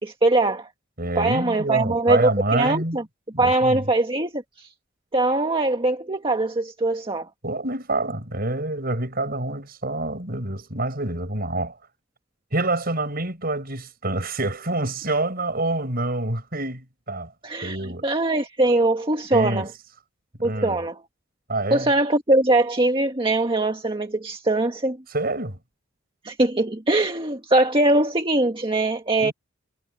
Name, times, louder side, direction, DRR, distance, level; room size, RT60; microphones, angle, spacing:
voice 1, 0.0-0.7 1.1-3.0 3.4-4.7 5.1-7.3 17.4-19.7 20.4-21.0 21.7-25.0 26.2-29.3, right 2 dB, 25° right, 1.7 m, -22 dB
voice 2, 1.0-3.0 3.3-3.8 7.4-11.8 12.5-17.3 17.6-18.1 19.3-19.7 20.4-20.8 21.5-21.9 25.1-25.6 29.2-29.3, right 2 dB, 50° right, 7.2 m, -27 dB
head